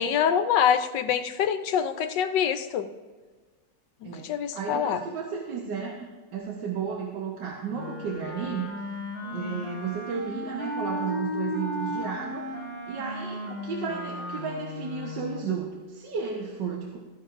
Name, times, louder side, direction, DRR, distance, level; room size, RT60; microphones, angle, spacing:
voice 1, 0.0-2.9 4.0-5.0 9.2-9.6, left 8 dB, 75° left, 9 dB, 1.4 m, -25 dB
voice 2, 4.0-8.7 9.3-12.5 12.9-17.0, right 6 dB, 70° right, -1 dB, 1.7 m, -33 dB
Wind instrument woodwind instrument, 7.7-15.6, left 1 dB, 15° left, 1.9 m, -35 dB
15.5 x 13.5 x 2.5 m, 1.3 s
omnidirectional pair, 2.0 m